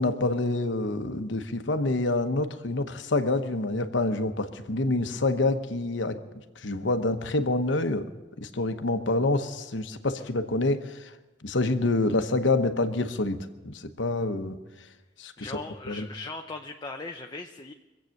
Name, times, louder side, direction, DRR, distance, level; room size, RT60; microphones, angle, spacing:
voice 1, 0.0-6.2 6.6-8.0 8.4-11.0 11.4-13.4 13.6-14.5 15.2-15.3 15.9-16.1, left 2 dB, 75° left, 8 dB, 1.0 m, -27 dB
voice 2, 15.4-17.7, left 3 dB, 25° left, 3 dB, 0.6 m, -39 dB
24.0 x 8.2 x 6.5 m, 1.1 s
head